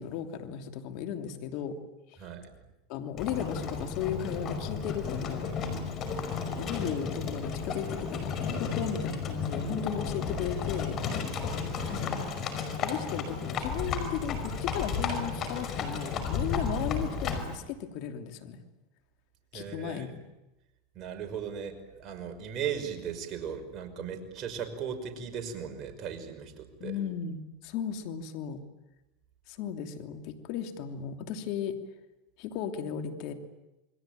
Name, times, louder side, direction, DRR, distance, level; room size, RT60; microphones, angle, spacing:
voice 1, 0.0-1.8 2.9-5.5 6.6-11.0 11.9-12.4 12.8-18.6 19.5-20.1 26.8-28.6 29.5-31.8 32.4-33.3, left 8 dB, 60° left, 6 dB, 2.8 m, -35 dB
voice 2, 2.2-2.5 11.6-12.3 19.5-20.2 21.0-26.9, right 7 dB, 40° right, 5 dB, 5.5 m, -38 dB
Livestock farm animals working animals, 3.2-17.6, left 5 dB, 40° left, 5.4 m, -33 dB
28.5 x 21.5 x 9.1 m, 0.98 s
supercardioid pair, 120°, 0 cm